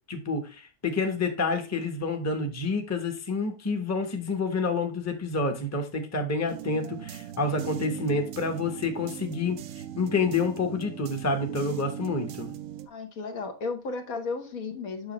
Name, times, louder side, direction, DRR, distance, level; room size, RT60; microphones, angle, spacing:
voice 1, 0.1-9.6 10.0-12.5, left 3 dB, 15° left, 4 dB, 0.9 m, -28 dB
sound 1, 6.5-12.9, right 11 dB, 70° right, 0.9 m, -39 dB
voice 2, 12.9-15.1, left 4 dB, 70° left, 4 dB, 1.7 m, -34 dB
7.3 x 6.1 x 3.0 m, 0.33 s
omnidirectional pair, 1.5 m